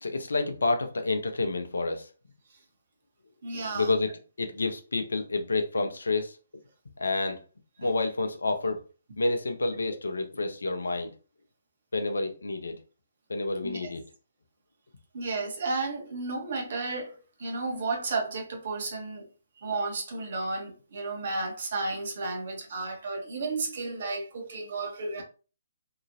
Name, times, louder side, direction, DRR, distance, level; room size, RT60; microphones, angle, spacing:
voice 1, 0.0-2.1 3.7-4.1 4.4-6.4 7.0-7.4 7.8-8.8 9.2-11.1 11.9-12.8 13.3-14.0, left 3 dB, 65° left, 0.5 m, -29 dB
voice 2, 3.4-3.9 13.6-13.9 15.1-19.3 19.6-25.2, right 3 dB, 50° right, 1.0 m, -33 dB
2.8 x 2.5 x 2.6 m
figure-of-eight pair, 135°, 0 cm